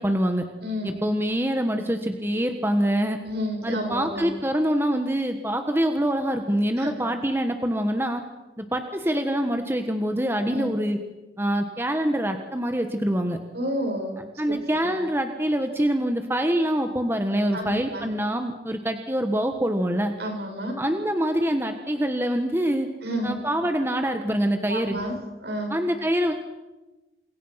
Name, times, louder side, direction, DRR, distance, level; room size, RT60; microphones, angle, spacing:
voice 1, 0.0-0.4 0.8-3.2 3.6-8.2 8.6-11.0 11.4-13.4 14.4-20.1 20.8-22.9 23.2-25.0 25.7-26.3, equal, 15° right, 6 dB, 1.6 m, -25 dB
voice 2, 0.6-1.0 3.2-4.3 6.8-6.9 10.5-10.7 13.5-14.2 14.8-14.9 17.5-18.1 20.2-20.8 23.0-23.4 24.7-25.1 25.4-25.7, equal, 70° right, 2 dB, 7.6 m, -30 dB
30.0 x 27.0 x 5.9 m, 1.1 s
head